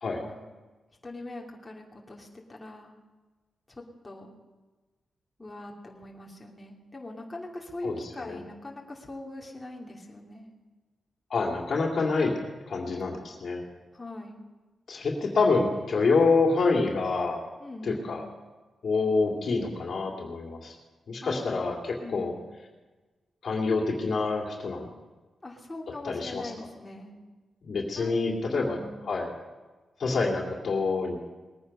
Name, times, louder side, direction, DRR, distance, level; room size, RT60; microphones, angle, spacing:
voice 1, 1.0-2.9 3.7-4.3 5.4-10.5 13.9-14.4 17.6-18.3 21.2-21.7 22.0-22.4 25.4-27.2 27.9-28.1 28.5-29.0, left 2 dB, 20° left, -2 dB, 2.7 m, -42 dB
voice 2, 11.3-12.3 12.7-13.6 14.9-17.4 17.8-18.2 18.8-20.7 21.1-22.3 23.4-24.9 26.0-26.4 27.6-28.8 29.1-29.3 30.0-31.2, left 4 dB, 60° left, 0 dB, 2.5 m, -26 dB
20.5 x 9.3 x 5.5 m, 1.3 s
cardioid pair, 80°, 0 cm